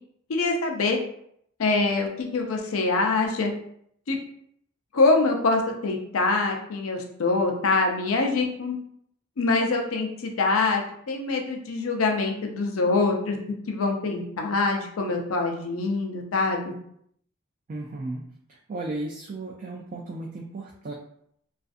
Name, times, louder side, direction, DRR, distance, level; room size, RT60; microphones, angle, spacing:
voice 1, 0.3-1.0 1.6-2.1 2.3-3.5 4.1-4.2 4.9-8.7 9.4-13.4 13.7-16.7, left 3 dB, 85° left, 2 dB, 0.5 m, -24 dB
voice 2, 17.7-18.2 18.7-20.9, right 2 dB, 40° right, -2 dB, 0.3 m, -34 dB
2.5 x 2.4 x 2.4 m, 0.70 s
head